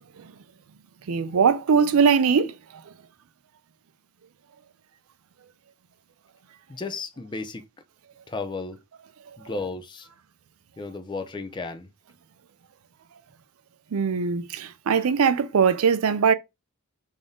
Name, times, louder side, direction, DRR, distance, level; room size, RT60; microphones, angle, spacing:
voice 1, 1.1-2.5 13.9-16.3, right 6 dB, 70° right, 0.4 m, -21 dB
voice 2, 6.7-7.7 8.3-8.8 9.4-10.1 10.8-11.9, left 3 dB, 20° left, 0.4 m, -34 dB
3.5 x 2.6 x 3.6 m
head